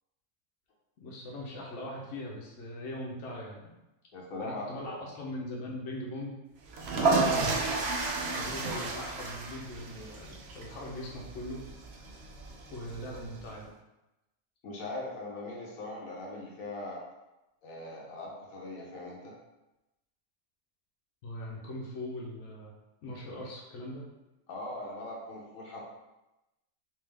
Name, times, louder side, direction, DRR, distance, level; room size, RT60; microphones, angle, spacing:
voice 1, 1.0-3.7 4.4-6.4 7.0-7.5 8.3-11.6 12.7-13.7 21.2-22.7 23.0-24.0, left 1 dB, 65° left, -3 dB, 1.0 m, -40 dB
voice 2, 4.1-4.6 5.0-5.1 7.0-7.2 14.6-17.0 17.6-19.3 24.5-25.8, left 2 dB, 90° left, -3 dB, 1.3 m, -40 dB
sound 1, 6.7-13.5, right 3 dB, 60° right, 0.7 m, -32 dB
3.4 x 2.9 x 3.3 m, 0.97 s
omnidirectional pair, 1.4 m